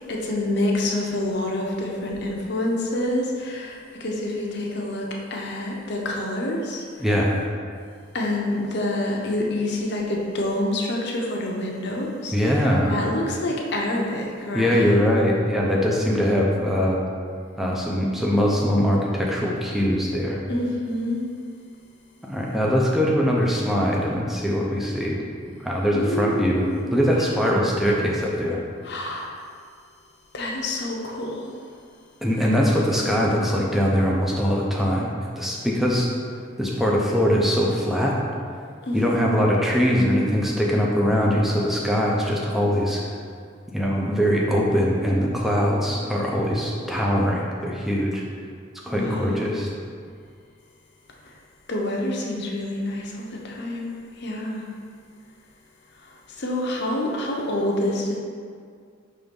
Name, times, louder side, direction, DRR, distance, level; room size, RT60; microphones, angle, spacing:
voice 1, 0.1-7.0 8.1-15.0 20.5-21.3 25.9-26.8 28.8-29.3 30.3-31.6 38.8-39.3 48.9-49.5 51.2-51.3 51.7-54.6 56.3-58.2, left 1 dB, 50° left, -1 dB, 0.8 m, -27 dB
voice 2, 7.0-7.3 12.3-12.9 14.5-17.0 17.6-20.4 22.2-25.2 25.6-26.6 26.9-28.6 32.2-36.1 36.6-38.2 38.9-43.0 43.7-48.2 48.8-49.7, equal, ahead, -3 dB, 0.6 m, -22 dB
5.5 x 3.5 x 5.3 m, 2.2 s
head